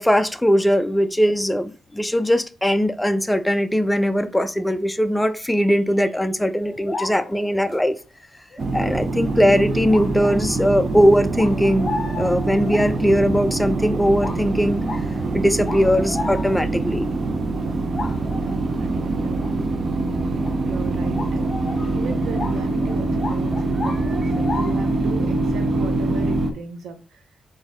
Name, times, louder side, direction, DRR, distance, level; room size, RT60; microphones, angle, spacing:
voice 1, 0.0-8.0 8.7-14.8 15.3-17.1, equal, 10° left, 0.3 m, -20 dB
sound 1, 6.6-7.9 8.5-8.7 9.2-9.4 9.9-10.6 10.9-13.2 13.7-13.9 14.2-16.8 17.2-17.3 17.6-18.7 19.3-19.5 20.4-20.6 21.0-25.0, left 3 dB, 35° left, 0.9 m, -34 dB
sound 2, 8.6-26.5, right 2 dB, 45° right, 0.5 m, -24 dB
voice 2, 18.3-19.6 20.7-27.2, right 5 dB, 85° right, 0.9 m, -37 dB
4.1 x 2.6 x 3.7 m
cardioid pair, 100°, 0 cm